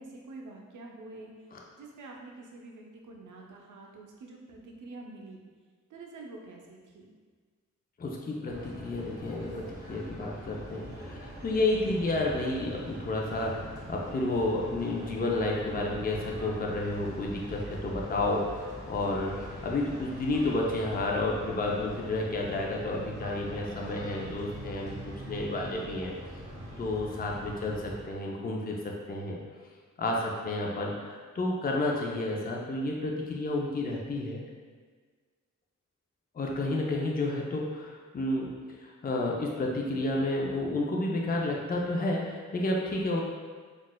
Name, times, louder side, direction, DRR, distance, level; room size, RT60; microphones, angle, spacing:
voice 1, 0.0-1.3 1.8-5.4 5.9-7.1, right 2 dB, 90° right, 0 dB, 0.5 m, -46 dB
voice 2, 8.0-26.1 26.8-29.4 30.0-34.4 36.3-38.5 38.8-43.2, left 2 dB, 30° left, -1 dB, 0.5 m, -31 dB
sound 1, 8.5-28.0, right 1 dB, 15° right, 1.0 m, -43 dB
3.9 x 2.4 x 2.2 m, 1.5 s
cardioid pair, 60°, 30 cm